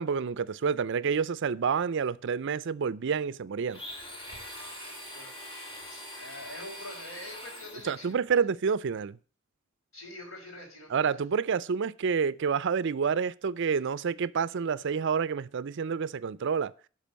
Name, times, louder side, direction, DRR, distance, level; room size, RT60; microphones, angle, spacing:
voice 1, 0.0-3.8 7.8-9.2 10.9-16.7, right 6 dB, 60° right, 0.5 m, -28 dB
Domestic sounds home sounds, 3.7-8.1, left 1 dB, 25° left, 2.6 m, -43 dB
voice 2, 5.1-8.4 9.9-11.2 14.8-14.9, left 1 dB, 75° left, 4.1 m, -46 dB
12.0 x 5.2 x 7.4 m
head